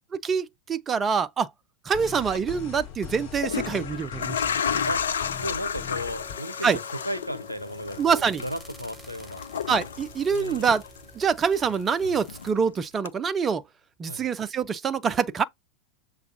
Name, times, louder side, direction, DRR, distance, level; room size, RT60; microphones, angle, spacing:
voice 1, 0.2-1.5 1.8-4.4 6.6-6.8 8.0-8.4 9.7-10.8 11.2-13.6 14.0-15.4, right 6 dB, 20° right, 0.3 m, -25 dB
sound 1, 1.9-6.3, left 8 dB, 45° left, 2.4 m, -40 dB
sound 2, 2.2-2.4 3.2-11.2 11.5-12.6 13.1-13.2, left 7 dB, 65° left, 0.3 m, -32 dB
voice 2, 5.4-9.5 10.3-10.8 14.1-14.3, equal, 90° right, 0.6 m, -35 dB
sound 3, 6.1-12.5, right 1 dB, ahead, 0.9 m, -49 dB
6.7 x 2.3 x 2.6 m
figure-of-eight pair, 90°, 0 cm